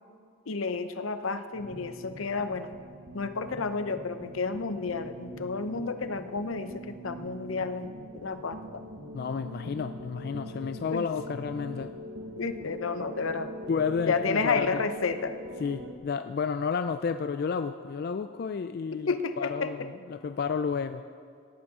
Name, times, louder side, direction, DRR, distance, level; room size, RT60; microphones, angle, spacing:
voice 1, 0.5-2.7 3.1-7.9 8.2-8.8 10.9-11.1 12.4-13.5 14.1-15.4 18.9-19.9, left 4 dB, 75° left, 10 dB, 0.7 m, -31 dB
sound 1, 1.5-15.9, equal, 75° right, 1.1 m, -43 dB
voice 2, 9.1-11.9 13.7-14.8 15.6-19.1 19.4-21.0, left 5 dB, 50° left, 10 dB, 0.3 m, -31 dB
16.5 x 8.7 x 4.9 m, 2.3 s
head